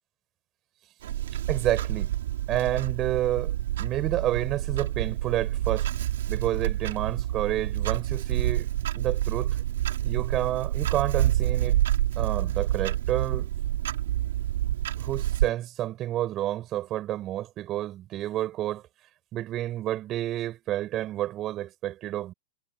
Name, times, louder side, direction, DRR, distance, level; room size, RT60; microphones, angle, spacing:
Clock, 1.0-15.5, right 13 dB, 75° right, 3.1 m, -28 dB
voice 1, 1.5-2.1 2.5-5.9 6.3-8.7 8.9-9.6 10.0-11.8 12.2-13.5 15.0-18.8 19.3-22.3, right 13 dB, 35° right, 7.1 m, -30 dB
hypercardioid pair, 120°, 0 cm